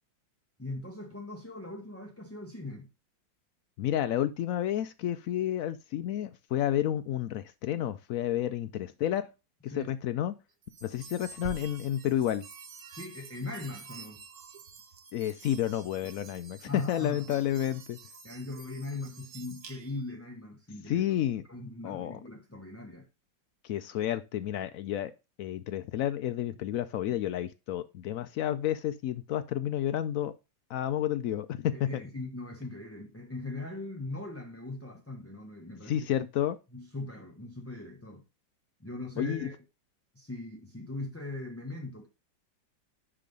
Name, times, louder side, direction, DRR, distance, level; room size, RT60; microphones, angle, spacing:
voice 1, 0.6-2.9 8.4-8.5 9.7-9.9 12.9-14.2 16.6-17.2 18.2-21.0 21.5-23.1 31.7-36.1 36.7-38.2 38.8-39.6 40.1-42.1, left 2 dB, 10° left, 0.8 m, -40 dB
voice 2, 3.8-9.3 9.6-10.3 10.8-12.4 15.1-18.0 20.9-21.4 21.8-22.2 23.6-25.1 25.4-30.3 30.7-31.9 35.9-36.6 39.2-39.5, left 11 dB, 85° left, 0.7 m, -30 dB
sound 1, 10.6-20.2, right 4 dB, 60° right, 1.5 m, -48 dB
9.9 x 3.4 x 5.2 m
omnidirectional pair, 2.0 m